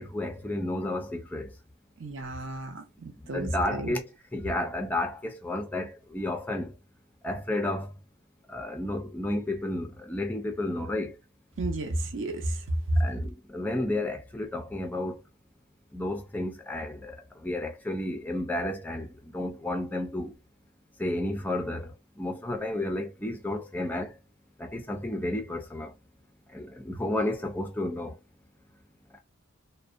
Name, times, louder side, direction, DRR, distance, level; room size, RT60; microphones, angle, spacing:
voice 1, 0.0-1.5 3.3-6.7 7.2-7.9 8.5-11.2 13.0-15.2 15.9-20.3 21.0-24.2 24.6-25.9 26.5-28.2 29.1-29.2, left 1 dB, 10° left, 0.4 m, -32 dB
voice 2, 2.0-3.9 11.6-12.6 12.9-13.0, right 1 dB, 60° right, 0.6 m, -31 dB
2.5 x 2.1 x 2.4 m
head